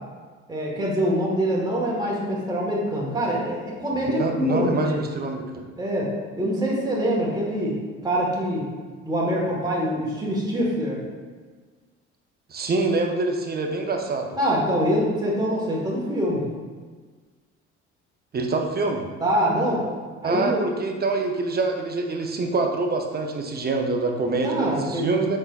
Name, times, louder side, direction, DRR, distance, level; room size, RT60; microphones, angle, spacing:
voice 1, 0.5-5.0 5.8-7.8 8.0-8.7 9.0-11.0 14.3-16.5 19.2-19.9 20.2-20.6 24.4-25.1, equal, 10° right, -5 dB, 1.3 m, -24 dB
voice 2, 4.1-5.7 12.5-14.3 18.3-19.0 20.2-25.4, right 3 dB, 25° right, 3 dB, 0.6 m, -25 dB
5.3 x 3.8 x 2.4 m, 1.5 s
hypercardioid pair, 60°, 36 cm